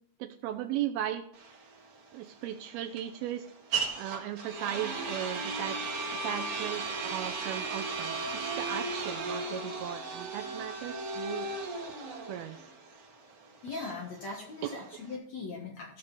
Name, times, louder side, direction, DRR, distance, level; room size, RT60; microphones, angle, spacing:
voice 1, 0.2-1.2 2.1-3.5 4.0-5.8 6.1-11.5 12.2-12.6 14.6-14.9, right 11 dB, 80° right, 6 dB, 2.3 m, -37 dB
sound 1, 1.3-15.2, right 3 dB, 50° right, 2.4 m, -36 dB
voice 2, 13.6-16.0, left 4 dB, 60° left, -1 dB, 2.1 m, -40 dB
15.5 x 6.6 x 4.1 m, 0.63 s
omnidirectional pair, 4.8 m